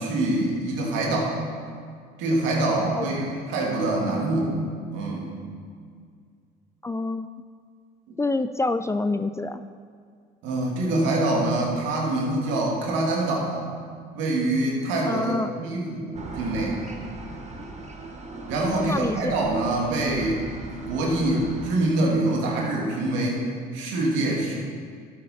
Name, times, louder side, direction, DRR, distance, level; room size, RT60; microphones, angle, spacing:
voice 1, 0.0-1.4 2.2-4.6 4.9-5.3 8.1-8.2 10.4-13.7 14.1-16.8 18.5-20.4 20.7-23.5 23.7-24.5, right 2 dB, 75° right, -2 dB, 2.5 m, -25 dB
voice 2, 6.8-7.3 8.2-9.6 15.1-15.5 18.7-19.3, left 2 dB, 15° left, 10 dB, 0.4 m, -27 dB
sound 1, 16.1-21.7, right 2 dB, 35° right, 1.8 m, -38 dB
11.5 x 8.3 x 4.3 m, 2.1 s
hypercardioid pair, 65°, 20 cm